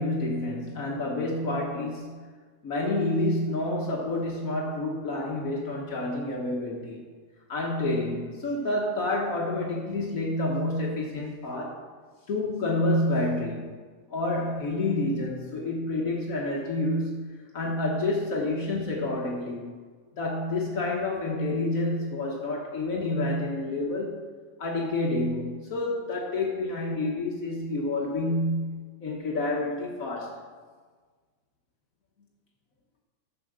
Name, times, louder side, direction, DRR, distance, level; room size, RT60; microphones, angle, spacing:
voice 1, 0.0-2.3 2.6-7.0 7.5-11.8 12.3-13.8 14.1-19.7 20.2-24.2 24.6-30.4, left 2 dB, 90° left, -2 dB, 0.7 m, -29 dB
10.5 x 7.0 x 6.2 m, 1.5 s
omnidirectional pair, 3.3 m